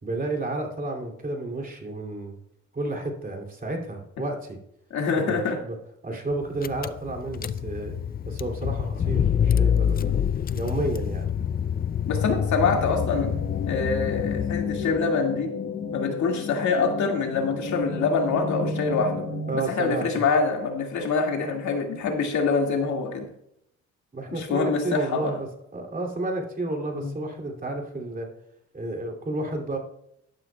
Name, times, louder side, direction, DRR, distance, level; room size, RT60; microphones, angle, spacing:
voice 1, 0.0-2.4 2.7-4.6 5.2-5.8 6.0-7.9 8.2-10.1 10.5-11.3 19.5-20.2 24.1-28.3 28.7-29.8, right 2 dB, 30° right, 1 dB, 2.7 m, -31 dB
voice 2, 4.9-5.6 10.0-10.2 12.1-13.3 13.7-15.5 15.9-19.3 19.5-23.3 24.3-25.3 26.9-27.1, left 4 dB, 70° left, 2 dB, 2.1 m, -25 dB
Car / Engine, 6.3-6.4 6.6-15.0, left 8 dB, 30° left, 0.4 m, -26 dB
sound 1, 12.2-19.6, left 4 dB, 50° left, 1.2 m, -32 dB
12.0 x 12.0 x 2.3 m, 0.76 s
cardioid pair, 90°, 30 cm